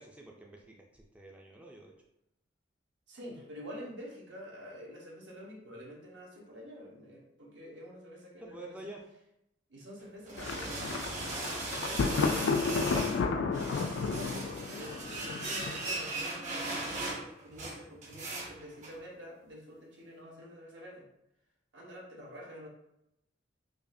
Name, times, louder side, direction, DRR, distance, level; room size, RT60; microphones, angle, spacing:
voice 1, 0.0-1.9 8.4-9.0, right 2 dB, 5° right, -1 dB, 0.4 m, -49 dB
voice 2, 3.1-8.9 9.7-11.3 11.8-13.3 14.0-21.1 21.7-22.7, equal, 70° right, -3 dB, 1.1 m, -48 dB
sound 1, 10.0-13.2 13.5-19.0, right 2 dB, 40° right, 1.1 m, -38 dB
Thunder, 10.4-16.2, left 4 dB, 90° left, 0.3 m, -32 dB
5.0 x 2.4 x 2.6 m, 0.82 s
head